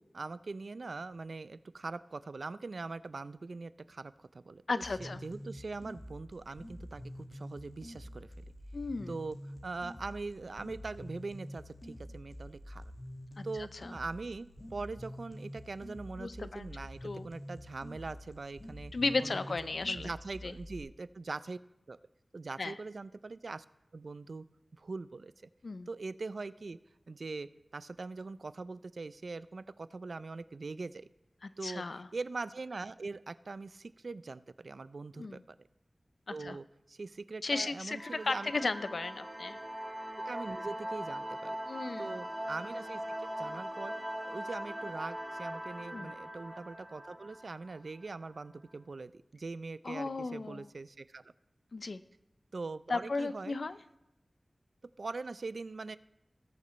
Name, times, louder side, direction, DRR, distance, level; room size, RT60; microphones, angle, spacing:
voice 1, 0.0-4.6 5.0-8.3 9.1-9.4 9.6-12.8 13.4-18.9 19.2-21.6 21.9-22.0 22.3-23.6 23.9-24.4 24.7-25.3 25.9-26.8 27.1-31.1 31.6-31.8 32.1-35.6 36.3-38.5 40.3-41.6 42.0-43.9 44.2-51.2 52.5-53.6 55.0-56.0, right 3 dB, 75° right, 15 dB, 0.3 m, -42 dB
voice 2, 4.7-5.2 8.7-9.2 13.4-13.5 13.8-13.9 16.2-16.7 17.0-17.3 18.9-20.1 20.4-20.5 22.6-22.8 25.6-25.9 31.4-32.1 35.2-35.4 36.3-36.6 37.4-39.6 41.7-42.2 45.9-46.1 49.8-50.7 51.7-52.0 52.9-53.8, left 3 dB, 75° left, 13 dB, 0.4 m, -35 dB
sound 1, 4.8-20.8, equal, 50° left, 1.8 m, -47 dB
sound 2, 37.9-48.3, right 1 dB, 15° right, 1.4 m, -41 dB
19.0 x 6.8 x 3.2 m, 0.88 s
wide cardioid pair, 80°, 0 cm